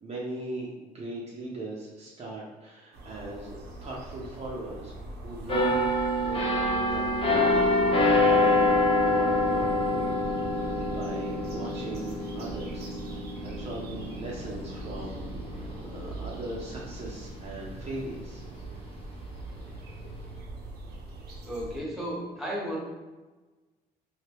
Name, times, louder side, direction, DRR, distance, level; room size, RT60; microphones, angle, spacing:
voice 1, 0.0-4.9 5.2-6.4 6.8-10.2 10.6-12.9 13.4-18.5, right 1 dB, 40° right, -4 dB, 0.8 m, -39 dB
sound 1, 2.9-21.8, right 2 dB, 75° right, 1.0 m, -41 dB
sound 2, 5.5-17.0 17.5-17.7, left 2 dB, 35° left, 0.8 m, -26 dB
voice 2, 21.4-22.8, equal, ahead, -5 dB, 1.3 m, -33 dB
3.3 x 2.8 x 3.0 m, 1.2 s
cardioid pair, 110°, 17 cm